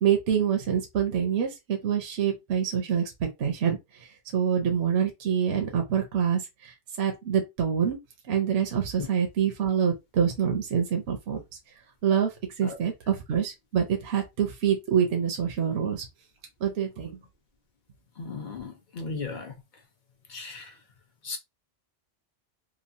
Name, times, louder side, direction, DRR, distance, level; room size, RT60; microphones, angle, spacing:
voice 1, 0.0-8.0 8.3-11.4 12.0-12.3 12.6-16.0 16.6-17.2, right 8 dB, 70° right, 0.9 m, -26 dB
voice 2, 18.2-19.5 20.3-20.7 21.2-21.4, left 4 dB, 50° left, 0.7 m, -36 dB
3.0 x 2.3 x 2.6 m
omnidirectional pair, 1.2 m